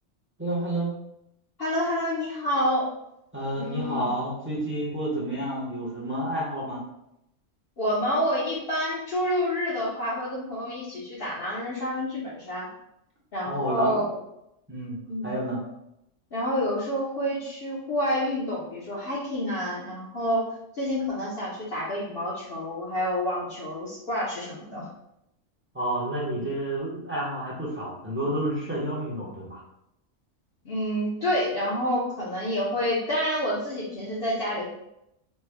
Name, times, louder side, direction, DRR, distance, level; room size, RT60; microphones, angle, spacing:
voice 1, 0.4-0.9 3.3-6.8 13.5-13.9 14.7-15.0 15.2-15.6 25.7-29.6, right 1 dB, 15° right, -6 dB, 0.6 m, -30 dB
voice 2, 1.6-2.9 3.6-4.1 7.8-12.7 13.3-14.1 15.1-15.3 16.3-20.4 20.7-24.9 26.3-26.4 30.6-34.7, equal, 55° left, -6 dB, 0.8 m, -28 dB
3.2 x 2.1 x 3.3 m, 0.82 s
omnidirectional pair, 1.4 m